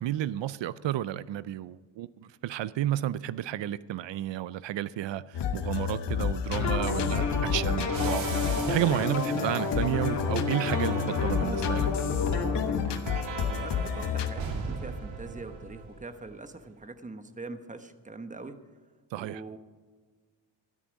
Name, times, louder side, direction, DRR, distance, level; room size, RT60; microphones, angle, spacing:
voice 1, 0.0-8.3 8.7-11.9 19.1-19.4, right 13 dB, 70° right, 18 dB, 0.6 m, -31 dB
sound 1, 5.3-14.3, left 8 dB, 65° left, 1.1 m, -31 dB
sound 2, 6.5-12.8, left 4 dB, 40° left, 2.5 m, -31 dB
sound 3, 7.9-16.3, right 4 dB, 85° right, 2.5 m, -40 dB
voice 2, 13.4-18.6 19.2-19.6, right 3 dB, 15° right, 9 dB, 1.0 m, -43 dB
13.5 x 12.0 x 5.2 m, 1.5 s
cardioid pair, 100°, 45 cm